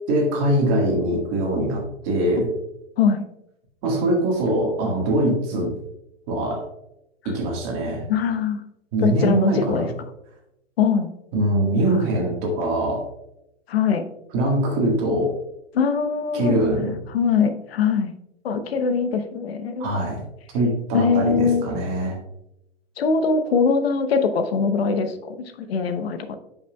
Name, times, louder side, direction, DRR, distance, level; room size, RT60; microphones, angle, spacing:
voice 1, 0.1-2.5 3.8-5.7 6.3-6.6 7.3-8.0 8.9-9.9 11.3-13.1 14.3-15.3 16.3-16.9 19.8-20.2 20.5-22.2, right 1 dB, 25° right, -1 dB, 1.7 m, -22 dB
voice 2, 8.1-8.6 9.0-9.9 10.8-11.1 11.9-12.1 13.7-14.0 15.7-16.6 17.1-18.1 18.4-20.0 20.9-21.6 23.0-26.4, left 5 dB, 55° left, 8 dB, 0.9 m, -22 dB
10.0 x 5.7 x 2.3 m, 0.85 s
hypercardioid pair, 165°, 36 cm